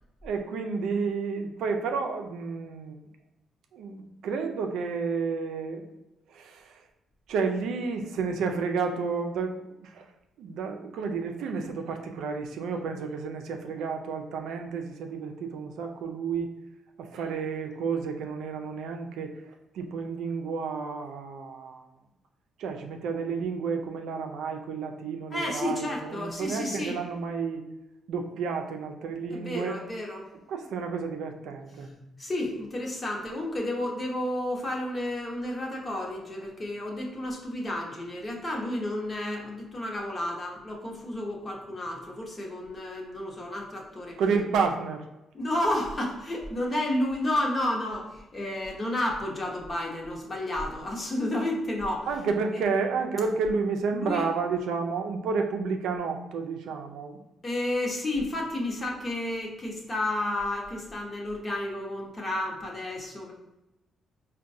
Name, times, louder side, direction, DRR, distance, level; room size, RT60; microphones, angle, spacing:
voice 1, 0.2-3.0 3.7-5.8 6.3-6.7 7.3-10.1 10.4-16.5 17.0-19.3 19.7-21.8 22.6-27.6 28.1-29.8 30.5-31.9 44.2-45.0 52.1-57.2, right 5 dB, 80° right, 4 dB, 0.4 m, -31 dB
voice 2, 25.3-27.0 29.3-30.3 31.7-44.2 45.3-52.1 53.9-54.2 57.4-63.3, left 1 dB, 30° left, 0 dB, 0.9 m, -31 dB
4.5 x 2.2 x 2.6 m, 0.94 s
cardioid pair, 90°, 0 cm